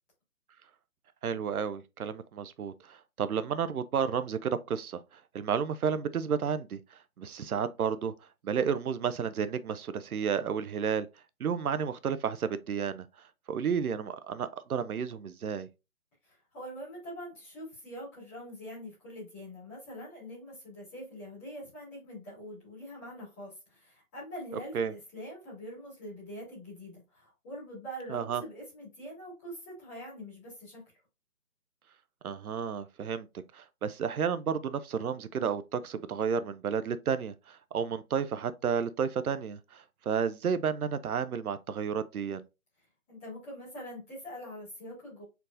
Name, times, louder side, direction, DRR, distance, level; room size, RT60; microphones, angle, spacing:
voice 1, 1.2-8.1 8.4-11.1 11.4-13.1 13.5-15.7 24.7-24.9 28.1-28.4 32.2-33.3 33.5-42.4, right 7 dB, 85° right, 0.6 m, -32 dB
voice 2, 16.2-31.0 43.1-45.2, equal, 10° left, 2.1 m, -44 dB
4.5 x 3.9 x 2.5 m
hypercardioid pair, 175°, 43 cm